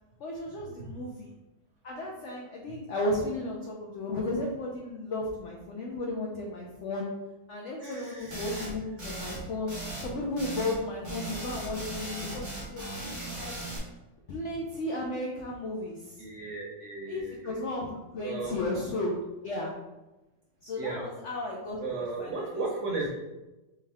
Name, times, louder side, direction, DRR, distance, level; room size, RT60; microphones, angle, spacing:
voice 1, 0.2-1.3 1.8-7.1 7.5-13.0 13.4-13.5 14.3-16.2 17.1-17.9 18.1-19.7 20.6-22.6, left 2 dB, 80° left, -2 dB, 0.6 m, -34 dB
voice 2, 7.8-8.4 16.2-17.5 18.2-18.5 20.8-21.0 21.8-23.1, right 3 dB, 50° right, -4 dB, 1.0 m, -35 dB
sound 1, 8.3-8.7 9.0-9.4 9.7-10.8 11.0-13.8, right 2 dB, 25° right, 0.6 m, -38 dB
3.6 x 3.3 x 3.4 m, 1.0 s
omnidirectional pair, 2.0 m